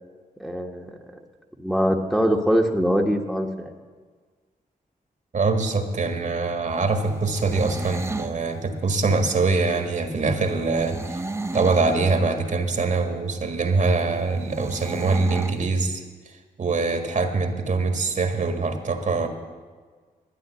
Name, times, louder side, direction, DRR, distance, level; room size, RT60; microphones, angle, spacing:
voice 1, 0.4-1.0 1.6-3.7, equal, ahead, 1 dB, 1.4 m, -23 dB
voice 2, 5.3-11.2 11.5-16.0 16.6-19.3, right 3 dB, 60° right, 6 dB, 1.7 m, -23 dB
sound 1, 7.1-8.4 10.7-12.0 14.5-15.6, right 2 dB, 20° right, 0.9 m, -32 dB
12.0 x 9.5 x 8.2 m, 1.5 s
cardioid pair, 70°, 15 cm